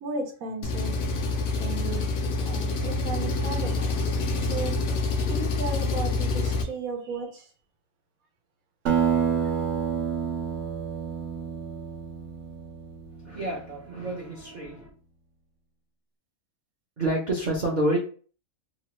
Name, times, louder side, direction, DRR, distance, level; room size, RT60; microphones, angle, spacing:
voice 1, 0.0-1.0 1.6-2.1 2.4-4.8 5.3-7.5, right 3 dB, 85° right, 2 dB, 1.2 m, -35 dB
Engine, 0.6-6.6, left 3 dB, 65° left, 0.8 m, -27 dB
Acoustic guitar, 8.9-13.7, right 7 dB, 65° right, 0.9 m, -28 dB
voice 2, 13.2-14.9 17.0-18.0, right 1 dB, 45° right, -5 dB, 0.6 m, -28 dB
3.0 x 2.2 x 2.9 m, 0.41 s
omnidirectional pair, 1.5 m